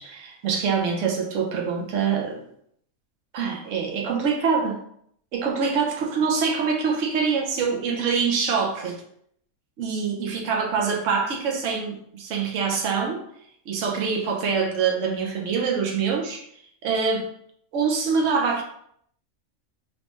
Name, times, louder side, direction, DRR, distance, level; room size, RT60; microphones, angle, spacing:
voice 1, 0.0-2.4 3.3-4.8 5.3-9.0 9.8-13.2 13.7-16.4 16.8-17.3 17.7-18.6, right 5 dB, 65° right, 1 dB, 1.1 m, -25 dB
4.8 x 3.1 x 3.1 m, 0.68 s
omnidirectional pair, 1.5 m